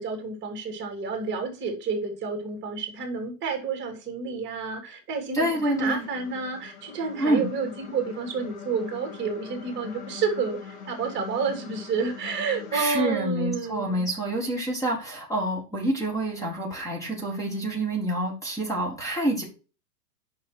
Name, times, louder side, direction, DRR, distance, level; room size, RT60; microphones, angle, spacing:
voice 1, 0.0-14.0, right 4 dB, 25° right, 5 dB, 2.7 m, -30 dB
voice 2, 5.3-6.1 7.2-7.5 12.7-19.4, right 1 dB, 5° left, 0 dB, 1.8 m, -27 dB
sound 1, 5.6-12.8, left 7 dB, 60° left, 3.7 m, -43 dB
6.5 x 5.6 x 4.5 m, 0.33 s
hypercardioid pair, 145°, 47 cm